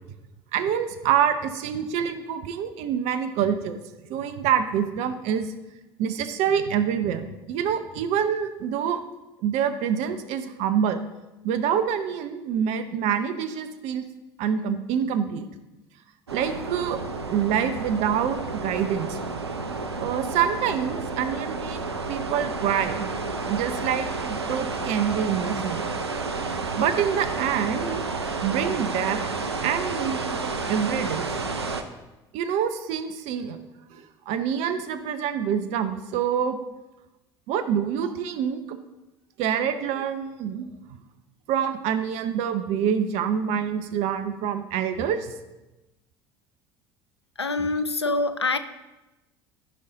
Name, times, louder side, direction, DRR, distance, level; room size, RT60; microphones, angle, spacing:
voice 1, 0.5-3.8 4.1-5.5 6.0-9.0 9.4-11.0 11.4-14.0 14.4-15.5 16.3-17.0 17.3-19.2 20.0-21.8 22.1-23.1 23.5-25.9 26.8-28.0 28.4-29.2 29.6-31.2 32.3-33.6 33.9-36.6 37.5-38.8 39.4-40.7 41.5-45.3, right 8 dB, 55° right, 11 dB, 0.8 m, -26 dB
sound 1, 16.3-31.8, right 4 dB, 85° right, 0.6 m, -31 dB
voice 2, 47.4-48.6, left 3 dB, 90° left, 10 dB, 0.4 m, -25 dB
13.5 x 5.6 x 3.9 m, 1.0 s
figure-of-eight pair, 65°, 13 cm